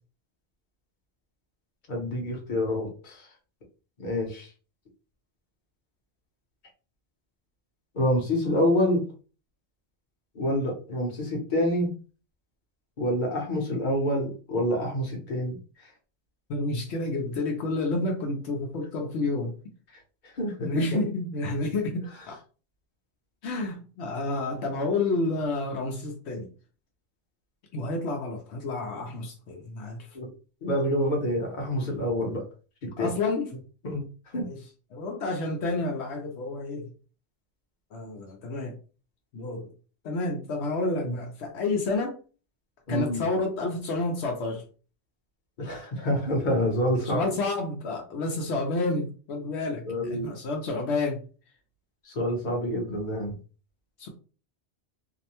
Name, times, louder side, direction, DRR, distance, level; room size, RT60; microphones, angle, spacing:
voice 1, 1.9-3.3 4.0-4.5 7.9-9.0 10.3-11.9 13.0-15.6 20.2-20.8 30.1-30.3 30.6-32.4 33.0-33.1 33.8-34.0 34.3-34.5 41.0-41.1 42.9-43.2 45.6-47.3 49.8-50.3 52.1-53.4, left 1 dB, 50° left, 0 dB, 0.9 m, -27 dB
voice 2, 16.5-19.5 20.6-22.4 23.4-26.5 27.7-30.1 33.0-33.5 34.4-34.6 34.9-36.9 37.9-38.8 39.3-39.7 40.0-42.1 42.9-44.6 47.0-51.2 54.0-54.1, left 2 dB, 80° left, 2 dB, 0.9 m, -30 dB
2.6 x 2.1 x 2.8 m, 0.37 s
omnidirectional pair, 1.1 m